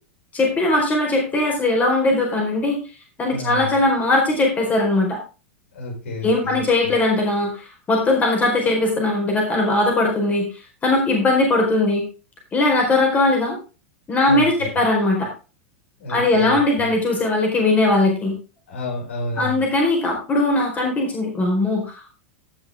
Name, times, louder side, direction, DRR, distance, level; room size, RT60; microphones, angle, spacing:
voice 1, 0.3-2.8 3.2-5.2 6.2-10.5 10.8-12.0 12.5-13.6 14.1-15.3 16.1-18.3 19.4-22.1, left 2 dB, 20° left, 0 dB, 4.6 m, -19 dB
voice 2, 3.3-3.8 5.7-6.9 14.3-14.7 16.0-16.9 18.7-19.6, left 2 dB, 70° left, 1 dB, 6.9 m, -31 dB
16.5 x 6.4 x 3.8 m, 0.33 s
hypercardioid pair, 100°, 7 cm